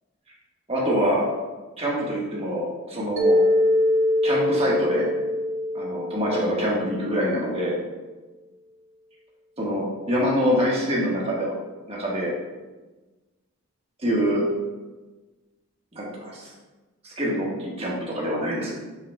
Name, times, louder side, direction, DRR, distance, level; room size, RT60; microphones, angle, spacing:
voice 1, 0.7-1.2 1.8-3.4 4.2-5.0 5.7-7.7 9.6-11.5 11.9-12.3 14.0-14.4 15.9-16.5 17.0-18.7, equal, 25° right, -4 dB, 1.5 m, -25 dB
Mallet percussion, 3.2-7.3, left 1 dB, 55° right, 0.9 m, -23 dB
8.5 x 5.5 x 2.3 m, 1.2 s
head